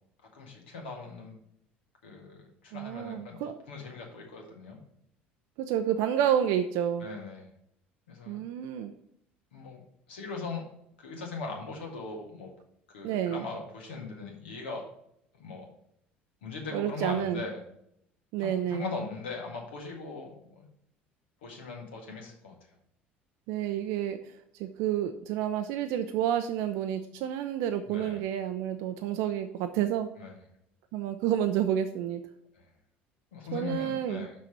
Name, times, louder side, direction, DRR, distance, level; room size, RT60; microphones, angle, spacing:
voice 1, 0.3-1.3 2.0-3.4 3.7-4.8 7.0-7.5 8.1-8.4 9.5-9.8 10.1-10.6 11.0-12.5 12.9-14.8 15.3-15.7 16.4-17.6 18.4-20.7 21.4-22.5 27.9-28.2 30.2-30.4 33.3-34.3, left 4 dB, 70° left, 0 dB, 1.8 m, -39 dB
voice 2, 2.7-3.6 5.7-7.1 8.3-8.9 13.0-13.5 16.7-17.4 18.3-18.9 23.5-24.2 24.6-30.1 30.9-32.2 33.5-34.3, right 10 dB, 60° right, 7 dB, 0.5 m, -29 dB
6.1 x 5.7 x 5.9 m, 0.73 s
figure-of-eight pair, 65°, 6 cm